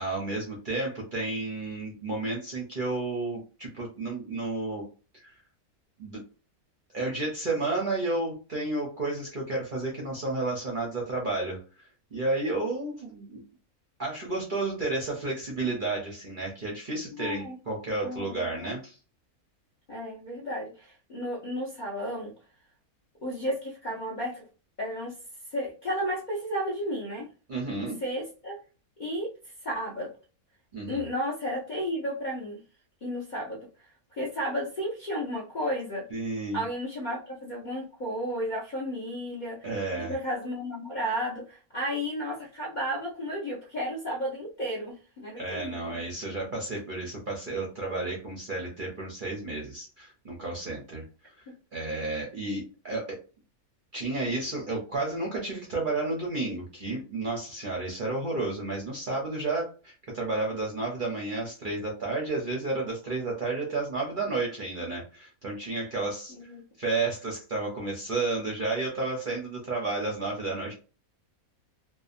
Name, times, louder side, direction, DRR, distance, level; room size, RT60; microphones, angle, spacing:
voice 1, 0.0-4.8 5.2-5.4 6.0-6.2 6.9-13.4 14.0-19.0 27.5-28.0 30.7-31.1 36.1-36.6 39.6-40.2 45.3-51.0 51.7-53.2 53.9-66.5 66.8-70.7, right 2 dB, 50° right, -2 dB, 0.6 m, -32 dB
voice 2, 17.2-17.6 18.0-18.7 19.9-22.3 23.2-24.5 24.8-25.1 25.5-27.3 28.0-28.6 29.0-29.3 29.6-30.1 30.9-32.6 33.0-36.0 36.5-46.0 66.3-66.6, equal, 45° left, -4 dB, 0.6 m, -33 dB
2.8 x 2.2 x 2.4 m, 0.35 s
omnidirectional pair, 1.6 m